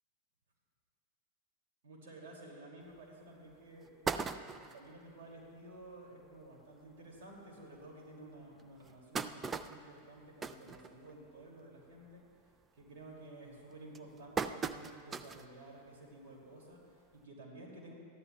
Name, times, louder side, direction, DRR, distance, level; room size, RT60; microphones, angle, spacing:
voice 1, 1.8-12.3 12.7-17.9, right 2 dB, 55° right, -1 dB, 2.7 m, -53 dB
sound 1, 2.9-3.0 3.5-3.6 3.8-4.9 5.4-5.5 5.8-5.9 6.2-6.4 7.1-7.2 7.7-7.8 8.6-11.4 11.8-12.1 12.5-12.9 13.5-15.5 15.9-16.0 17.2-17.3, right 5 dB, 20° right, 0.4 m, -39 dB
21.5 x 14.0 x 2.3 m, 2.3 s
figure-of-eight pair, 90°, 0 cm